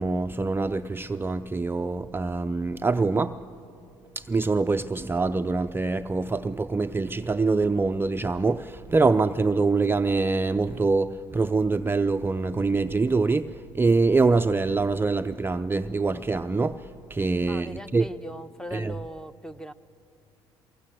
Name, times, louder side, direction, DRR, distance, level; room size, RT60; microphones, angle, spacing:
voice 1, 0.0-3.4 4.2-18.1 18.7-18.9, right 3 dB, 15° right, 0.5 m, -24 dB
voice 2, 17.5-19.7, equal, 5° left, 0.9 m, -39 dB
23.5 x 22.5 x 7.7 m
hypercardioid pair, 60°, 13 cm